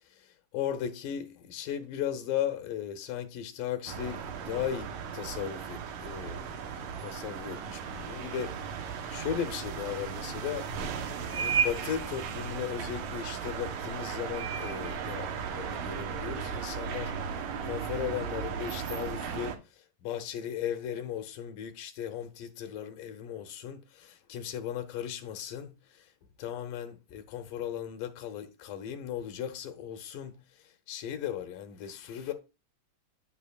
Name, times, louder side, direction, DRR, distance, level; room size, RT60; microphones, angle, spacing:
voice 1, 0.2-8.5 8.9-26.1 26.4-32.3, left 9 dB, 80° left, 2.4 m, -37 dB
sound 1, 3.9-19.6, right 6 dB, 70° right, 2.3 m, -35 dB
10.0 x 8.4 x 2.4 m
omnidirectional pair, 3.8 m